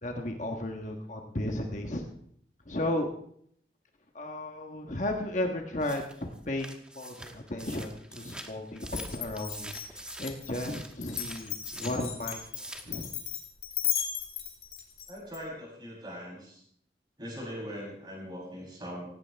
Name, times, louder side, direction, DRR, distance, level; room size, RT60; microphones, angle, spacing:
voice 1, 0.0-2.1 2.6-3.1 4.1-13.1, left 1 dB, 45° left, 3 dB, 1.4 m, -34 dB
sound 1, 5.8-12.0 12.3-13.0, right 1 dB, 5° right, 1.2 m, -45 dB
Glass, 8.9-15.4, left 10 dB, 70° left, 3.9 m, -35 dB
voice 2, 15.1-16.6 17.2-19.1, equal, 25° right, -3 dB, 7.9 m, -41 dB
18.0 x 16.5 x 3.5 m, 0.66 s
head